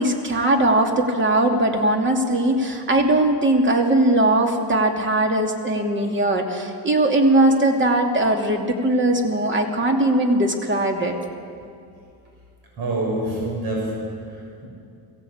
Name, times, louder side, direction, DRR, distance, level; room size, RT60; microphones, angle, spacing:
voice 1, 0.0-11.2, right 1 dB, 25° right, 3 dB, 2.7 m, -20 dB
voice 2, 12.8-14.7, right 1 dB, 60° right, -1 dB, 6.8 m, -27 dB
22.5 x 17.5 x 8.7 m, 2.5 s
cardioid pair, 120°, 42 cm